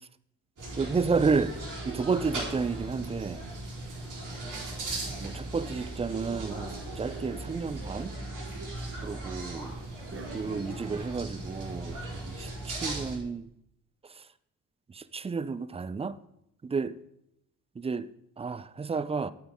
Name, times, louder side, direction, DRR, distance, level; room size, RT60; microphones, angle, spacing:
sound 1, 0.6-13.2, right 2 dB, 50° right, 3.7 m, -38 dB
voice 1, 0.8-1.6 1.9-3.4 5.1-8.1 9.0-9.7 10.3-13.5 14.1-14.2 14.9-16.2 16.6-17.0 17.8-18.1 18.4-19.3, right 5 dB, 15° right, 0.4 m, -31 dB
sound 2, 10.1-12.0, right 1 dB, 30° right, 1.4 m, -48 dB
8.8 x 8.0 x 3.6 m
hypercardioid pair, 45°, 39 cm